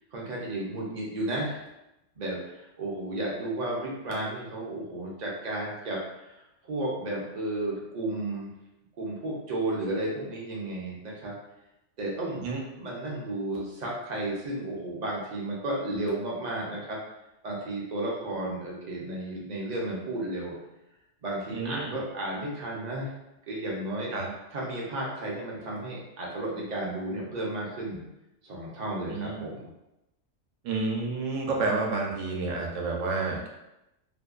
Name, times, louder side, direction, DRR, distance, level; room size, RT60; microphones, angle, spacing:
voice 1, 0.1-1.6 2.2-6.3 6.7-8.5 9.0-11.3 12.0-12.5 12.8-17.0 17.4-20.5 21.2-23.1 23.5-24.1 24.5-28.0 28.4-29.7, right 1 dB, 55° right, -4 dB, 0.5 m, -33 dB
voice 2, 21.5-22.0 24.1-24.3 29.1-29.4 30.6-33.5, right 3 dB, 90° right, -1 dB, 1.0 m, -30 dB
2.6 x 2.1 x 2.3 m, 0.91 s
omnidirectional pair, 1.3 m